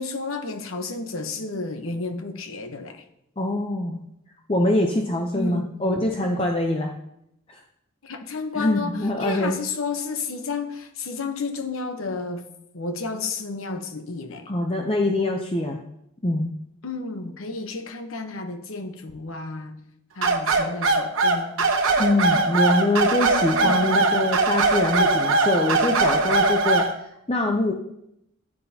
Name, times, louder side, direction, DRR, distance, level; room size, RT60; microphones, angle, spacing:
voice 1, 0.0-3.0 5.3-5.7 8.0-12.4 12.7-14.5 16.8-19.8 20.1-21.6 23.5-23.9, left 3 dB, 85° left, 7 dB, 1.0 m, -31 dB
voice 2, 3.4-4.0 4.5-6.9 7.5-7.6 8.5-9.6 14.5-15.8 16.2-16.5 22.0-26.8 27.3-27.7, left 1 dB, 25° left, 2 dB, 0.6 m, -23 dB
sound 1, 20.2-26.9, right 3 dB, 75° right, 1.0 m, -21 dB
9.8 x 9.7 x 2.8 m, 0.79 s
head